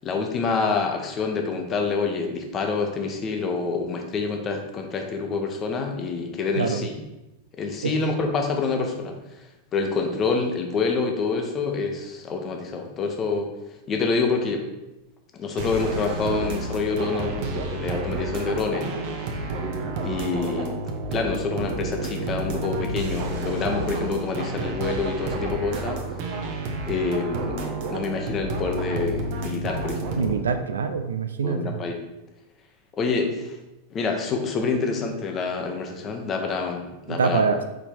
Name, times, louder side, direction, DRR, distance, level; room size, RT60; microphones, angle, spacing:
voice 1, 0.0-6.9 7.6-9.2 9.7-13.5 13.9-14.6 15.3-18.9 20.0-20.7 21.1-26.0 26.8-30.5 31.4-32.0 33.0-33.6 33.9-37.4, left 4 dB, 25° left, 3 dB, 1.0 m, -27 dB
voice 2, 6.6-6.9 7.8-7.9 30.2-31.8 37.1-37.6, right 5 dB, 70° right, 8 dB, 0.4 m, -24 dB
sound 1, 15.6-30.3, right 2 dB, 45° right, 0.9 m, -30 dB
5.2 x 4.3 x 4.5 m, 0.98 s
figure-of-eight pair, 90°, 0 cm